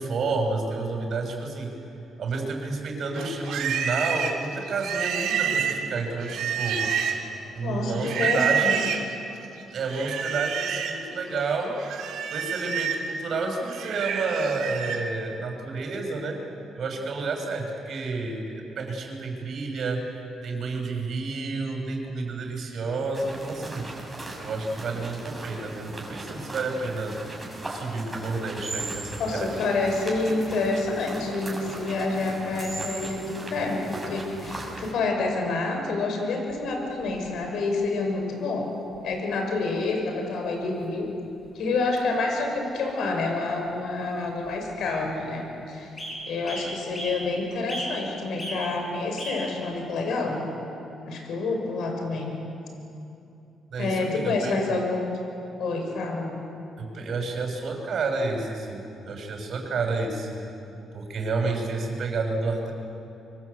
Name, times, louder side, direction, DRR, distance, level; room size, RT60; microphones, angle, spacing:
voice 1, 0.0-1.8 2.2-7.2 7.5-8.8 9.7-16.4 16.7-20.1 20.4-24.0 24.4-27.2 27.6-29.5 53.7-54.7 56.8-60.3 60.9-62.7, right 3 dB, 60° right, 2 dB, 6.6 m, -30 dB
Livestock farm animals working animals, 3.1-7.4 8.0-9.1 9.9-11.0 11.4-15.1, right 7 dB, 80° right, 2.7 m, -28 dB
voice 2, 7.6-8.8 29.2-38.7 39.0-41.1 41.5-45.9 46.3-50.4 51.1-52.4 53.8-55.1 55.6-56.4, left 3 dB, 75° left, 2 dB, 6.5 m, -28 dB
sound 1, 23.1-34.9, right 2 dB, 15° right, 7.5 m, -38 dB
sound 2, 36.5-37.4 38.6-38.7 38.9-39.0 39.7-40.0 40.3-40.4 40.7-40.9 41.2-41.5 42.4-42.5 42.9-43.0 44.1-44.2 44.4-44.9 45.4-45.5 46.0-46.2 46.4-47.2 47.7-48.1 48.4-48.6 49.2-49.4 50.1-50.2, equal, 30° left, 7.2 m, -36 dB
25.5 x 24.5 x 8.4 m, 2.8 s
cardioid pair, 90°, 0 cm